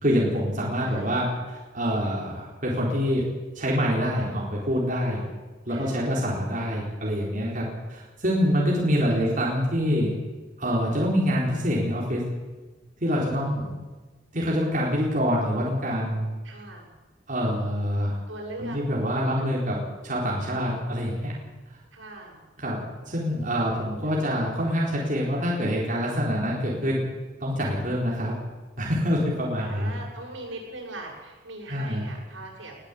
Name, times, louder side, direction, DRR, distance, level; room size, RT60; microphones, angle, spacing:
voice 1, 0.0-3.2 3.5-5.2 5.7-10.1 10.6-12.2 13.0-13.7 14.3-16.3 17.3-18.2 18.6-19.8 20.0-21.3 22.6-27.0 27.4-28.4 28.8-29.9 31.7-32.1, equal, 45° right, -4 dB, 4.3 m, -26 dB
voice 2, 0.8-1.3 5.7-6.1 9.0-9.2 16.4-16.9 18.3-18.8 19.2-19.5 21.9-22.4 24.0-24.3 29.6-32.7, right 2 dB, 80° right, -1 dB, 7.5 m, -41 dB
20.5 x 14.5 x 8.5 m, 1.3 s
head